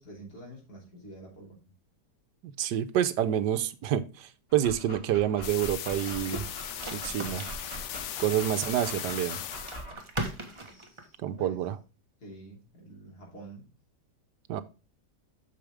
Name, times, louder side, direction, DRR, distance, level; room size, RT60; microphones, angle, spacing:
voice 1, 0.0-1.6 10.4-11.6 12.2-13.7, right 1 dB, 65° left, -1 dB, 3.7 m, -48 dB
voice 2, 2.4-6.4 6.9-7.4 8.2-9.4 11.2-11.7 14.5-14.6, right 11 dB, 85° right, 12 dB, 1.3 m, -28 dB
Dog, 4.5-9.9, right 1 dB, 35° left, 4.1 m, -44 dB
sound 1, 5.4-9.9, left 11 dB, 85° left, 0.6 m, -38 dB
sound 2, 5.9-11.3, right 2 dB, 20° right, 1.1 m, -40 dB
8.5 x 6.4 x 3.4 m, 0.32 s
omnidirectional pair, 1.8 m